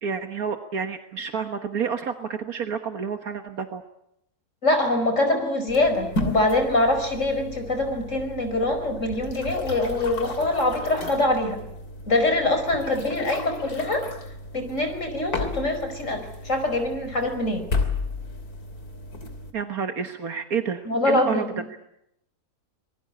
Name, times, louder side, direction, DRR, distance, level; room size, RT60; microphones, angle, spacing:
voice 1, 0.0-3.8 19.5-21.5 21.7-21.8, right 6 dB, 70° right, 6 dB, 1.8 m, -29 dB
voice 2, 4.6-11.6 12.1-14.1 14.5-17.7 20.9-21.6, left 2 dB, 55° left, 7 dB, 5.4 m, -24 dB
sound 1, 5.7-19.5, left 2 dB, 80° left, 3.5 m, -34 dB
26.0 x 21.0 x 8.8 m, 0.80 s
omnidirectional pair, 1.6 m